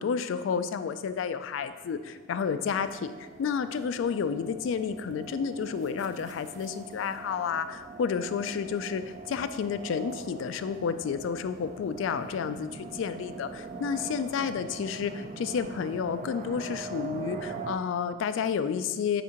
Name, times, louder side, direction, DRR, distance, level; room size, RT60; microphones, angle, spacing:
voice 1, 0.0-3.1 3.4-9.0 9.3-19.2, left 6 dB, 75° left, 11 dB, 0.3 m, -31 dB
sound 1, 1.5-17.8, right 3 dB, 35° right, 0.3 m, -43 dB
9.2 x 3.6 x 2.9 m, 1.3 s
head